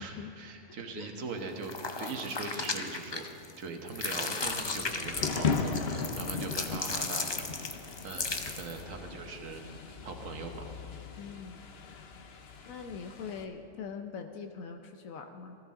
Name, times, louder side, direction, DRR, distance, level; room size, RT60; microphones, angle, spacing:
voice 1, 0.0-3.2 3.6-9.6 10.0-10.6, right 4 dB, 75° right, 3 dB, 1.5 m, -41 dB
voice 2, 0.7-1.1 11.2-11.6 12.7-15.6, left 6 dB, 85° left, 4 dB, 1.2 m, -42 dB
sound 1, 1.6-3.6 3.9-8.8, left 3 dB, 35° left, 0.4 m, -36 dB
Thunder / Rain, 4.4-13.4, left 5 dB, 55° left, 1.0 m, -37 dB
19.0 x 14.0 x 3.7 m, 3.0 s
omnidirectional pair, 1.4 m